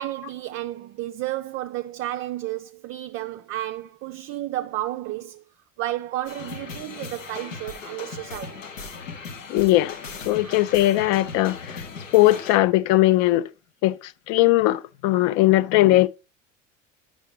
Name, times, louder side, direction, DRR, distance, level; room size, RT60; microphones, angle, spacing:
voice 1, 0.0-5.4 5.8-8.7 10.3-10.6, right 14 dB, 35° right, 0.4 m, -32 dB
sound 1, 6.2-12.6, left 4 dB, 80° left, 1.1 m, -38 dB
voice 2, 9.5-10.0 10.3-11.8 12.1-13.5 13.8-16.1, left 16 dB, 45° left, 0.5 m, -19 dB
9.1 x 6.0 x 3.3 m
figure-of-eight pair, 70°, 38 cm